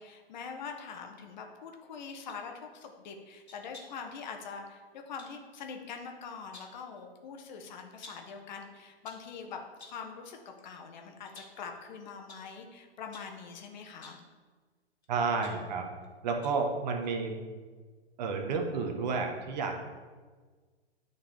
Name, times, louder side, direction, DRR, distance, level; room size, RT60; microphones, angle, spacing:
voice 1, 0.0-14.2, left 5 dB, 45° left, 3 dB, 0.9 m, -44 dB
sound 1, 2.1-2.4 3.5-4.1 5.2-5.4 6.3-6.8 8.0-8.4 8.9-9.3 9.8-10.1 10.6-10.8 11.2-11.7 12.3-12.5 13.1-13.4 13.9-14.3 15.0-16.1 16.4-16.7 17.0-17.1, left 2 dB, 85° left, 1.5 m, -53 dB
voice 2, 15.1-15.9 16.2-17.3 18.2-19.8, right 4 dB, 40° right, 3 dB, 1.0 m, -31 dB
9.9 x 4.0 x 3.3 m, 1.4 s
figure-of-eight pair, 115°, 32 cm